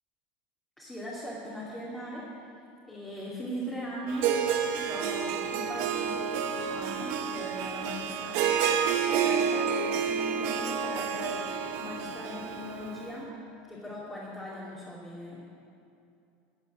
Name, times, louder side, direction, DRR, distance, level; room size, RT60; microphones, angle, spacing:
voice 1, 0.8-2.3 2.9-4.3 4.8-8.6 9.1-13.3 13.7-15.4, equal, 10° left, -8 dB, 2.5 m, -39 dB
Harp, 4.1-13.1, right 7 dB, 55° right, 1.1 m, -29 dB
13.5 x 8.1 x 8.4 m, 2.6 s
supercardioid pair, 145°, 5 cm